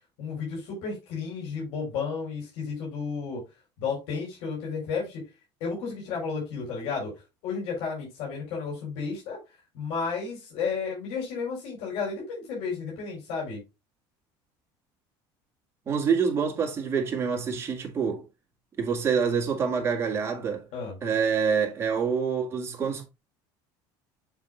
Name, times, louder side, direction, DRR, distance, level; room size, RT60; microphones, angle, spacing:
voice 1, 0.2-3.4 3.8-5.2 5.6-7.1 7.4-9.4 9.7-13.6 20.7-20.9, left 5 dB, 75° left, 3.9 m, -32 dB
voice 2, 15.9-18.2 18.8-20.7 21.0-23.1, right 6 dB, 25° right, 2.1 m, -26 dB
7.4 x 3.7 x 3.8 m
cardioid pair, 140°, 10 cm